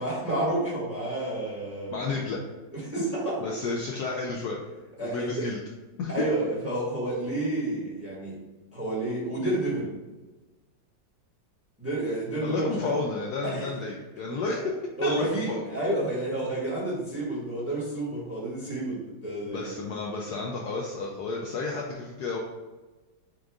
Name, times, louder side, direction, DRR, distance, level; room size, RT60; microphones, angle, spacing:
voice 1, 0.0-2.0 2.7-3.4 5.0-5.5 6.1-8.4 8.7-9.9 11.8-12.9 13.4-13.7 14.4-14.6 15.0-19.8, right 1 dB, 10° right, -6 dB, 1.0 m, -30 dB
voice 2, 1.9-2.4 3.4-4.6 5.0-5.6 6.0-6.1 12.4-14.6 15.0-15.6 19.5-22.4, left 3 dB, 70° left, -1 dB, 1.0 m, -31 dB
6.3 x 2.4 x 3.5 m, 1.2 s
omnidirectional pair, 2.1 m